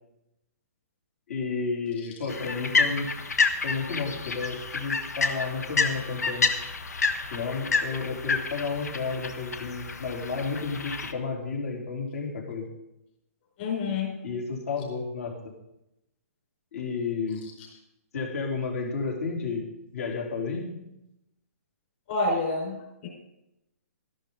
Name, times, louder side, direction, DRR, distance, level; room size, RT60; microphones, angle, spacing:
voice 1, 1.3-3.1 3.6-6.5 7.3-12.7 14.2-15.3 16.7-17.4 18.1-19.7 19.9-20.7, left 4 dB, 70° left, -1 dB, 3.7 m, -32 dB
sound 1, 2.3-11.1, left 4 dB, 90° left, 1.1 m, -29 dB
voice 2, 13.6-14.2 22.1-23.1, left 3 dB, 45° left, 0 dB, 4.8 m, -28 dB
13.0 x 11.5 x 3.9 m, 0.87 s
hypercardioid pair, 150°, 8 cm